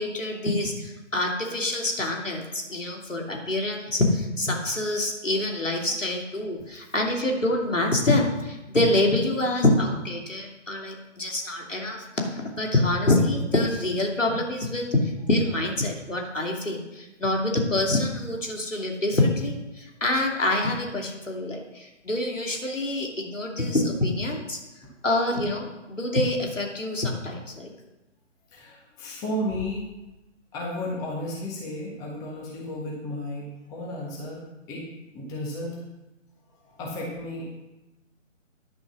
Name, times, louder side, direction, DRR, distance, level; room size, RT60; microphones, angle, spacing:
voice 1, 0.0-24.6 25.0-27.7, left 2 dB, 80° left, 0 dB, 2.8 m, -26 dB
voice 2, 6.6-6.9 27.7-27.8 28.5-29.9 30.5-34.4 34.7-34.8 35.1-35.8 36.5-37.6, left 1 dB, 10° left, -4 dB, 1.5 m, -33 dB
10.5 x 6.9 x 6.3 m, 1.0 s
figure-of-eight pair, 145°, 38 cm